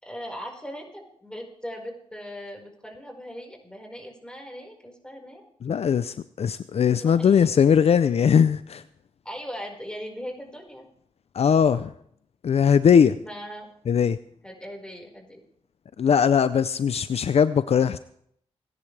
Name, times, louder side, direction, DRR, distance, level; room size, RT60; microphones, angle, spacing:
voice 1, 0.0-5.4 7.0-7.5 9.2-10.8 13.2-13.7 14.4-15.4, equal, 10° left, 1 dB, 4.9 m, -39 dB
voice 2, 5.6-8.8 11.3-11.9 12.4-13.2 13.9-14.2 16.0-18.0, left 7 dB, 65° left, 14 dB, 0.5 m, -20 dB
29.5 x 11.0 x 3.4 m, 0.67 s
cardioid pair, 60°, 11 cm